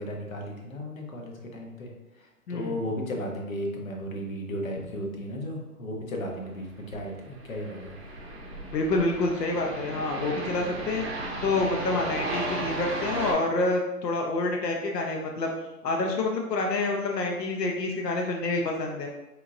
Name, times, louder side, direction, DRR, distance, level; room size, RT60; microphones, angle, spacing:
voice 1, 0.0-8.0, equal, 55° left, 0 dB, 0.9 m, -35 dB
sound 1, 6.7-13.3, right 2 dB, 40° right, 0.7 m, -35 dB
voice 2, 8.7-11.0 11.4-15.5 15.8-19.1, left 2 dB, 85° left, 1 dB, 0.7 m, -27 dB
4.6 x 2.4 x 2.6 m, 1.0 s
hypercardioid pair, 175°, 47 cm